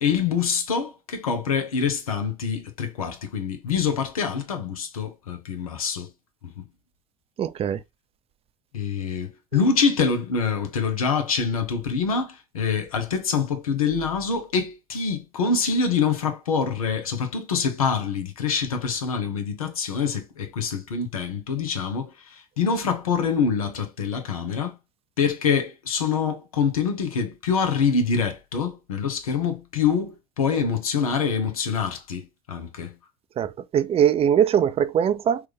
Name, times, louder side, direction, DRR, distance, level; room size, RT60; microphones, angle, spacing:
voice 1, 0.0-6.1 6.6-6.7 8.7-24.7 25.2-32.9, left 6 dB, 85° left, 0.8 m, -25 dB
voice 2, 7.4-7.8 33.4-35.4, right 9 dB, 35° right, 0.5 m, -21 dB
4.6 x 2.5 x 3.2 m
hypercardioid pair, 70°, 18 cm